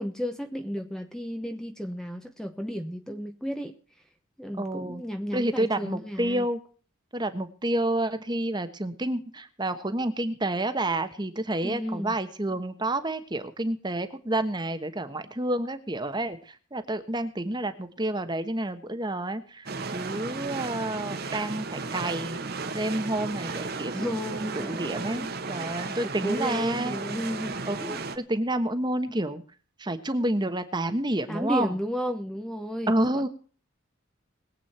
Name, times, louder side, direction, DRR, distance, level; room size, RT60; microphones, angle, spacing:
voice 1, 0.0-3.7 4.4-6.5 11.6-12.2 23.9-28.0 31.3-33.3, equal, 5° left, 1.0 m, -33 dB
voice 2, 4.6-5.0 5.3-6.6 7.1-22.4 22.7-23.9 24.3-27.0 27.6-29.4 29.8-31.7 32.9-33.3, right 1 dB, 20° right, 1.2 m, -29 dB
sound 1, 19.7-28.2, right 4 dB, 45° right, 1.4 m, -34 dB
21.5 x 8.5 x 4.3 m
head